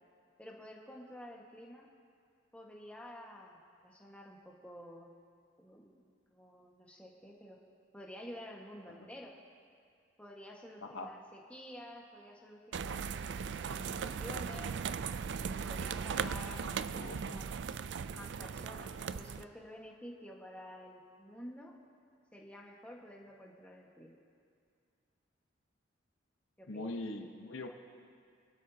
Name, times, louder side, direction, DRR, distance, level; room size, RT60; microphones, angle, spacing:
voice 1, 0.4-1.9 2.5-5.1 5.6-7.6 7.9-9.4 10.2-14.8 15.4-17.5 18.1-21.8 22.3-24.1 26.6-27.0, equal, 5° left, -2 dB, 1.5 m, -50 dB
voice 2, 10.8-11.1 16.5-16.6 16.9-17.4 26.7-27.7, left 2 dB, 80° left, 4 dB, 1.0 m, -42 dB
sound 1, 12.7-19.4, right 6 dB, 60° right, 0.4 m, -38 dB
26.5 x 12.5 x 2.8 m, 2.3 s
head